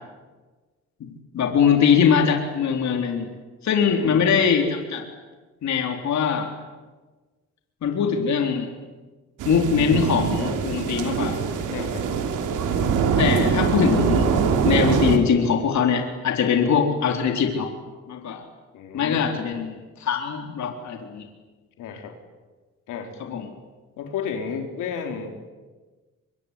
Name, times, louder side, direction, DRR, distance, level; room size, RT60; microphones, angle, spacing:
voice 1, 1.0-3.3 3.6-5.0 5.6-6.5 7.8-8.7 9.4-11.4 13.2-14.3 14.6-17.7 18.1-18.4 18.9-21.3 23.3-23.5, left 7 dB, 65° left, 3 dB, 3.8 m, -22 dB
voice 2, 3.8-4.3 11.7-12.1 18.7-19.3 21.8-22.1 22.9-23.1 24.0-25.4, left 6 dB, 85° left, 3 dB, 4.1 m, -32 dB
sound 1, 9.4-15.2, right 6 dB, 85° right, 3.2 m, -23 dB
24.5 x 24.0 x 9.8 m, 1.3 s
cardioid pair, 90°, 30 cm